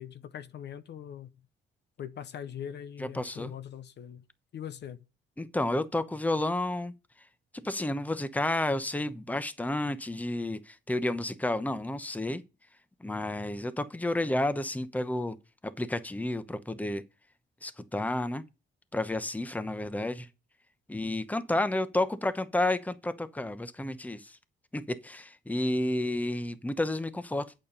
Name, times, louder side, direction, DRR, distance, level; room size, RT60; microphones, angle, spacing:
voice 1, 0.0-1.3 2.0-4.2 4.5-5.0, left 9 dB, 60° left, 0.8 m, -41 dB
voice 2, 3.0-3.5 5.4-6.9 7.5-12.4 13.0-15.4 15.6-17.0 17.6-18.4 18.9-20.3 20.9-24.4 24.7-27.5, left 1 dB, 10° left, 0.9 m, -31 dB
8.5 x 6.8 x 5.3 m
cardioid pair, 90°, 20 cm